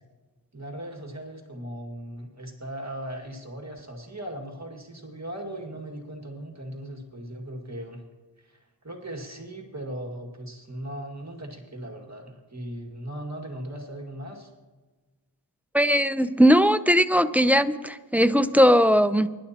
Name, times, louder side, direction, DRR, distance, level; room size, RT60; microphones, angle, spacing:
voice 1, 0.5-8.0 8.4-14.5, right 1 dB, 40° right, 2 dB, 2.0 m, -38 dB
voice 2, 15.7-19.3, equal, 5° right, 11 dB, 0.5 m, -19 dB
24.5 x 11.0 x 2.9 m, 1.3 s
wide cardioid pair, 50°, 43 cm